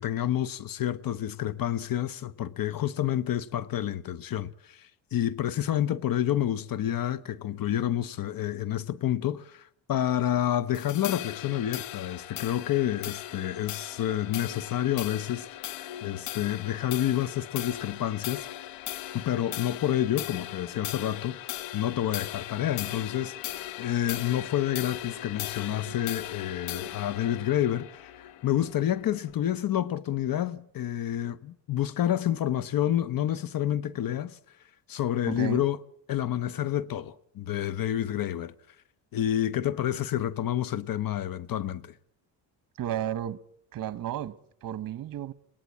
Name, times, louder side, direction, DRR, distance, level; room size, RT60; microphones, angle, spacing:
voice 1, 0.0-18.5 19.1-28.1 28.4-34.4 34.9-35.8 36.1-38.5 39.1-41.9, left 11 dB, 55° left, 0.9 m, -29 dB
sound 1, 10.7-29.3, left 13 dB, 85° left, 0.8 m, -39 dB
voice 2, 35.3-35.7 42.8-43.4 43.7-45.3, right 11 dB, 50° right, 1.0 m, -33 dB
23.0 x 17.5 x 8.5 m
cardioid pair, 85°, 41 cm